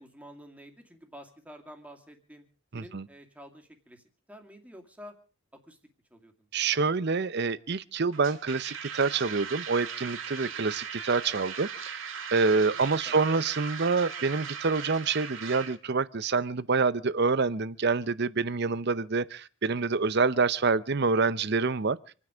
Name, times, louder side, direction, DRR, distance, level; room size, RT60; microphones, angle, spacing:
voice 1, 0.0-2.4 2.7-4.0 4.3-5.2 5.6-5.8 6.1-6.5 10.4-10.7 12.6-13.2 18.7-19.0, equal, 5° right, 2.4 m, -50 dB
voice 2, 2.7-3.1 6.5-22.0, right 4 dB, 50° right, 0.7 m, -27 dB
sound 1, 8.1-15.8, right 7 dB, 65° right, 2.0 m, -38 dB
27.5 x 9.7 x 5.1 m
head